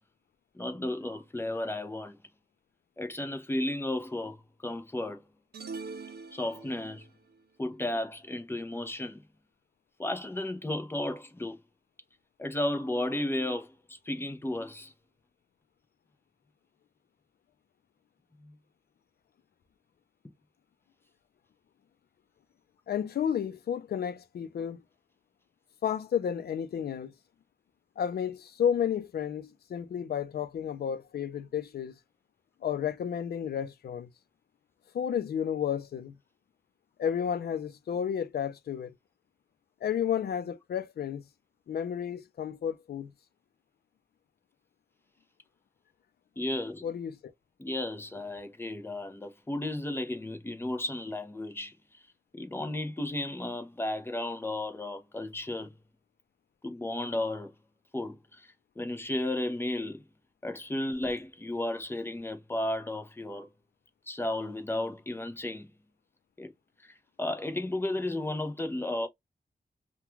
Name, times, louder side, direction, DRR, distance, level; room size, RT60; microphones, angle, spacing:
voice 1, 0.5-2.2 3.0-5.2 6.3-7.1 7.6-9.2 10.0-11.6 12.4-14.9 18.4-18.5 46.4-46.9 47.6-52.0 52.3-55.7 56.6-57.5 57.9-60.1 60.4-63.5 64.1-65.7 66.4-66.5 66.8-69.1, left 1 dB, 15° left, 0.5 m, -34 dB
sound 1, 5.5-7.1, right 4 dB, 85° right, 0.5 m, -42 dB
voice 2, 22.9-24.8 25.8-27.1 28.0-31.9 32.6-34.1 34.9-36.2 37.0-38.9 39.8-41.2 41.7-43.1 46.8-47.2, left 8 dB, 75° left, 0.4 m, -32 dB
2.3 x 2.2 x 3.0 m
wide cardioid pair, 160°, 16 cm